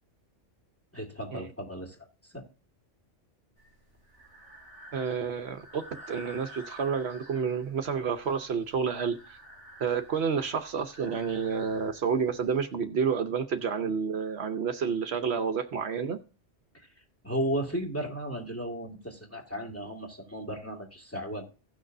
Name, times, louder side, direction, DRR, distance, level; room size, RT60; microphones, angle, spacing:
voice 1, 0.9-2.0 2.3-2.5 17.2-21.5, right 1 dB, 10° left, 0 dB, 2.2 m, -34 dB
Breathing, 3.6-12.6, equal, 90° left, 3.0 m, -51 dB
voice 2, 4.9-9.4 9.8-16.2, right 6 dB, 65° right, 7 dB, 1.0 m, -30 dB
16.5 x 6.2 x 2.6 m, 0.35 s
omnidirectional pair, 1.2 m